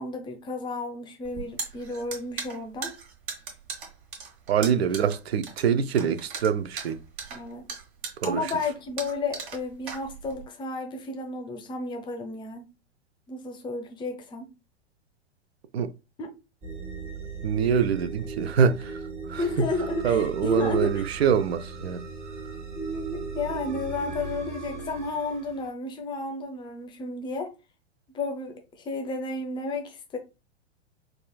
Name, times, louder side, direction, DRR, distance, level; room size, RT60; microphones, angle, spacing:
voice 1, 0.0-2.9 7.3-7.7 8.2-12.7 13.3-14.5 16.2-16.3 19.4-21.1 22.7-27.5 28.1-30.2, left 3 dB, 15° left, 0.6 m, -32 dB
sound 1, 1.2-10.5, right 5 dB, 45° right, 1.1 m, -38 dB
voice 2, 4.5-7.0 8.2-8.5 15.7-15.9 17.4-19.0 19.3-19.7 20.0-22.1, right 7 dB, 65° right, 0.5 m, -25 dB
sound 2, 16.6-25.7, right 4 dB, 20° right, 0.9 m, -37 dB
4.8 x 2.4 x 2.3 m
figure-of-eight pair, 100°, 35 cm